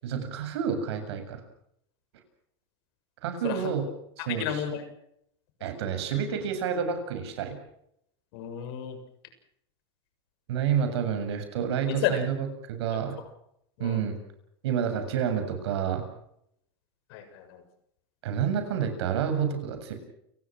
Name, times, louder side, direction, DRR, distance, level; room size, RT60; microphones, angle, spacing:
voice 1, 0.0-1.4 3.2-3.9 4.2-4.5 5.6-7.6 10.5-13.2 13.8-14.2 14.6-16.0 18.2-19.9, right 8 dB, 75° right, 7 dB, 7.4 m, -29 dB
voice 2, 3.4-3.7 4.2-4.8 8.3-9.0 11.9-12.2 12.9-13.0 13.8-14.0 17.1-17.6, left 9 dB, 65° left, 8 dB, 7.0 m, -32 dB
29.5 x 18.0 x 6.3 m, 0.73 s
supercardioid pair, 115°, 14 cm